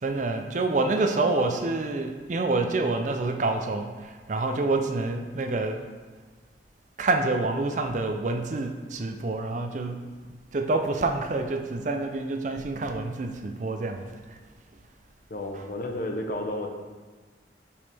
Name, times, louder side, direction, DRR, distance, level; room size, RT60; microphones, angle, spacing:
voice 1, 0.0-5.8 7.0-14.4 15.5-15.6, right 3 dB, 40° right, 5 dB, 0.5 m, -27 dB
voice 2, 15.3-16.7, left 1 dB, 50° left, 4 dB, 0.7 m, -31 dB
6.9 x 5.3 x 3.4 m, 1.4 s
head